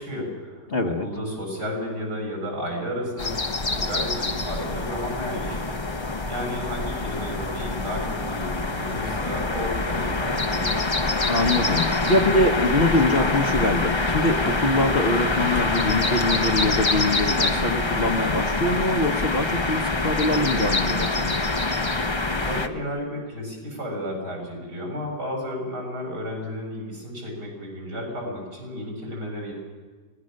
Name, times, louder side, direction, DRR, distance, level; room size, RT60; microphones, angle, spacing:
voice 1, 0.0-3.4 3.7-5.8 6.2-10.7 22.4-29.5, equal, 70° right, 0 dB, 7.7 m, -32 dB
voice 2, 0.7-1.1 11.2-21.4, left 2 dB, 40° left, 3 dB, 1.1 m, -24 dB
sound 1, 3.2-22.7, left 2 dB, 20° left, 0.7 m, -25 dB
25.0 x 18.5 x 6.5 m, 1.5 s
omnidirectional pair, 1.8 m